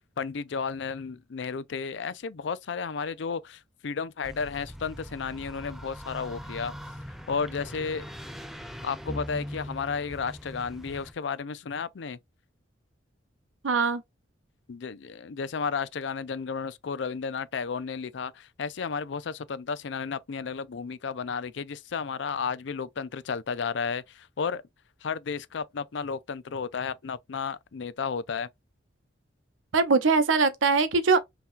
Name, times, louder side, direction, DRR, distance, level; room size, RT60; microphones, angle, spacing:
voice 1, 0.2-6.7 7.3-8.0 8.8-12.2 14.7-24.6 25.0-28.5, left 5 dB, 65° left, 0.5 m, -33 dB
sound 1, 4.2-11.1, equal, ahead, 0.4 m, -41 dB
voice 2, 13.6-14.0 29.7-31.2, right 4 dB, 80° right, 0.7 m, -22 dB
5.6 x 2.9 x 2.5 m
head